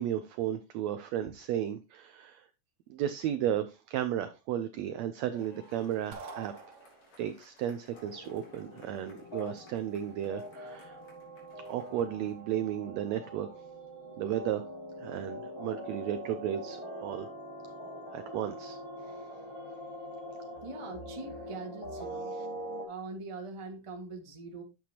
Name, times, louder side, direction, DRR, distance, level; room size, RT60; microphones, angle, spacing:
voice 1, 0.0-2.5 2.9-6.5 7.2-11.0 11.7-13.5 14.2-14.6 15.0-17.3 18.1-18.8 19.1-19.2, right 10 dB, 90° right, 10 dB, 1.5 m, -34 dB
sound 1, 5.3-12.6 13.6-13.7, left 3 dB, 65° left, 4.9 m, -61 dB
sound 2, 6.1-7.4, right 4 dB, 55° right, 2.5 m, -46 dB
sound 3, 7.9-22.9, equal, 10° left, 1.8 m, -43 dB
voice 2, 20.6-22.3 22.8-24.6, right 3 dB, 25° right, 2 dB, 0.7 m, -42 dB
10.0 x 7.8 x 2.9 m, 0.27 s
omnidirectional pair, 3.8 m